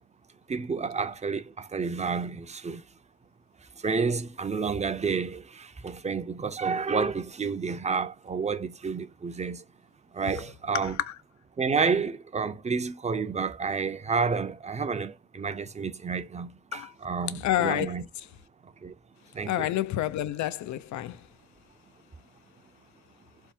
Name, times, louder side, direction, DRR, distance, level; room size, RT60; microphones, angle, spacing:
voice 1, 0.5-2.9 3.8-9.7 10.1-11.0 11.6-18.1 18.6-18.9 19.3-19.7, right 5 dB, 25° right, 0.6 m, -30 dB
voice 2, 10.8-11.1 16.7-16.9 17.4-18.0 19.5-21.3, left 13 dB, 70° left, 0.6 m, -29 dB
3.6 x 2.0 x 4.3 m
cardioid pair, 90°, 30 cm